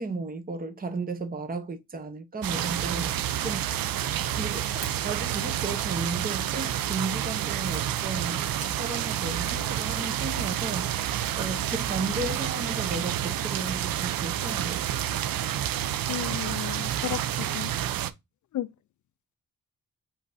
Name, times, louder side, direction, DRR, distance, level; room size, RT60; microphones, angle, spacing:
voice 1, 0.0-3.8 4.4-8.4 8.7-14.9, right 3 dB, 25° right, 0.9 m, -34 dB
sound 1, 2.4-18.1, right 11 dB, 75° right, 0.5 m, -29 dB
sound 2, 4.1-9.3 9.5-11.9 12.2-15.6, right 3 dB, 40° right, 2.0 m, -50 dB
voice 2, 16.1-17.7 18.5-18.7, left 12 dB, 55° left, 0.4 m, -34 dB
5.1 x 4.0 x 2.6 m
cardioid pair, 85°, 36 cm